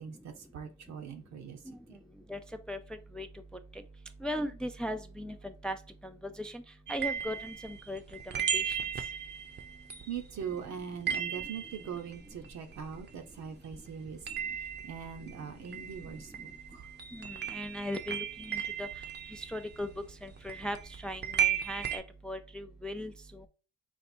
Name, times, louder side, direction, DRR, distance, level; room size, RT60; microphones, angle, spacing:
voice 1, 0.0-1.6 10.1-14.2 14.8-16.8, right 7 dB, 65° right, 6 dB, 0.9 m, -41 dB
voice 2, 4.2-5.3 5.6-5.7 6.4-6.6 6.9-8.0 8.5-8.8 17.2-18.9 19.5-19.9 20.2-20.8 21.0-23.1, equal, 5° left, 8 dB, 0.4 m, -37 dB
sound 1, 6.9-13.5 13.7-22.0, right 8 dB, 35° right, 0.7 m, -36 dB
4.3 x 2.5 x 4.3 m, 0.34 s
cardioid pair, 90°, 30 cm